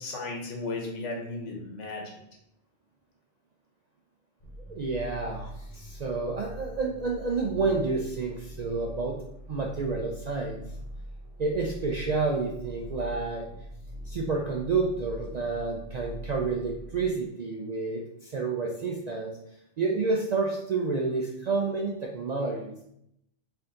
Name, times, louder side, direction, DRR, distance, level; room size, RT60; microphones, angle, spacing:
voice 1, 0.0-2.0, left 3 dB, 85° left, 1 dB, 1.2 m, -35 dB
sound 1, 4.4-17.1, equal, 35° left, 0.8 m, -42 dB
voice 2, 4.7-9.2 9.5-10.6 11.4-13.5 14.1-19.3 19.8-22.8, right 4 dB, 65° right, 0 dB, 0.4 m, -29 dB
4.4 x 2.7 x 3.7 m, 0.78 s
omnidirectional pair, 1.2 m